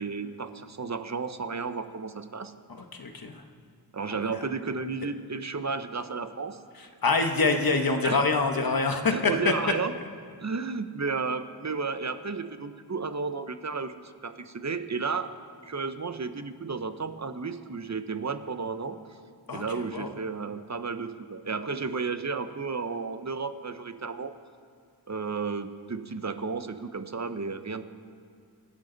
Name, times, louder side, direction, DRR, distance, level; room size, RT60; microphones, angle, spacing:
voice 1, 0.0-2.5 3.9-6.6 8.0-8.2 9.1-9.9 10.4-15.3 15.6-19.0 19.5-24.3 25.1-27.8, right 4 dB, 40° right, 10 dB, 0.9 m, -33 dB
voice 2, 3.0-3.4 7.0-9.3 19.5-19.6 19.9-20.1, left 3 dB, 60° left, 5 dB, 1.4 m, -25 dB
25.0 x 13.0 x 4.0 m, 2.2 s
wide cardioid pair, 80°, 41 cm